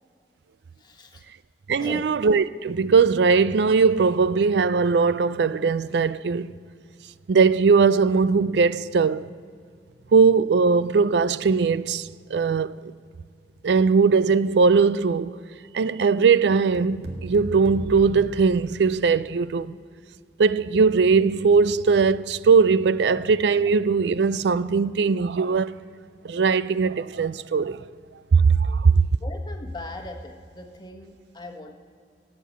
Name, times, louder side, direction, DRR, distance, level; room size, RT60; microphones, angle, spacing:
voice 1, 0.8-1.2 1.8-2.1 28.7-31.8, left 2 dB, 25° left, 1.3 m, -40 dB
voice 2, 1.7-6.5 7.3-9.3 10.1-12.8 13.6-15.4 15.7-19.7 20.4-25.7 26.2-27.8 28.3-29.0, right 5 dB, 70° right, 0.4 m, -20 dB
sound 1, 16.7-19.0, right 1 dB, 85° right, 1.9 m, -37 dB
17.5 x 7.6 x 8.3 m
head